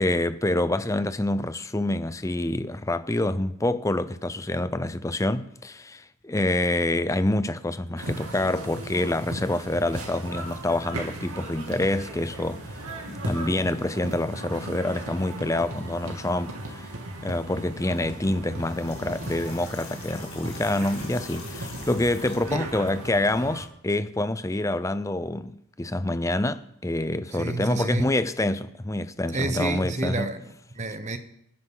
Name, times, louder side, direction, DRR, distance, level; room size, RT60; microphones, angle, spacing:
voice 1, 0.0-16.9 17.2-30.3, left 1 dB, 15° left, 0.5 m, -27 dB
sound 1, 8.0-23.6, right 1 dB, 85° right, 2.6 m, -37 dB
sound 2, 18.4-22.7, left 5 dB, 75° left, 3.7 m, -45 dB
voice 2, 27.3-28.1 29.3-31.2, right 2 dB, 30° right, 1.1 m, -30 dB
27.5 x 10.0 x 4.0 m
head